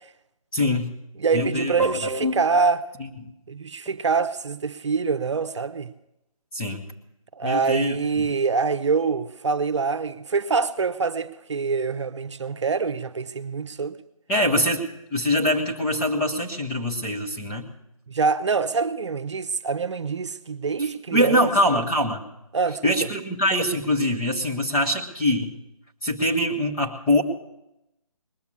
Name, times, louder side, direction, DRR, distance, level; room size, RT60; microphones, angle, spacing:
voice 1, 0.5-0.9 1.3-2.3 3.2-3.3 6.5-6.8 7.4-8.3 14.3-17.7 20.8-22.2 22.8-25.6 26.0-27.2, left 1 dB, 5° left, 0.6 m, -24 dB
voice 2, 1.2-2.9 3.5-5.9 7.3-14.0 18.1-21.5 22.5-22.9, right 5 dB, 50° right, 0.8 m, -25 dB
20.0 x 7.1 x 9.5 m
figure-of-eight pair, 160°, 19 cm